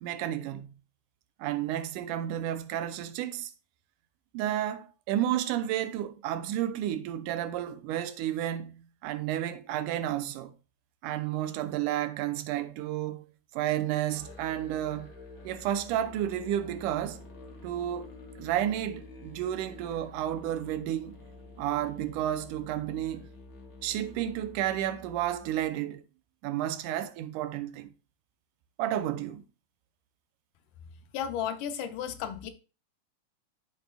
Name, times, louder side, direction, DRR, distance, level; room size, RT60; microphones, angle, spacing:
voice 1, 0.0-0.7 1.4-3.5 4.3-8.8 9.0-10.5 11.0-13.3 13.5-15.1 15.4-17.2 17.6-18.1 18.4-21.2 21.6-23.2 23.8-26.0 26.4-27.9 28.8-29.4, right 12 dB, 90° right, 2.1 m, -31 dB
Musical instrument, 14.1-25.7, left 2 dB, 50° left, 1.1 m, -49 dB
voice 2, 31.1-32.5, left 9 dB, 85° left, 2.3 m, -33 dB
13.0 x 4.7 x 2.3 m
omnidirectional pair, 3.6 m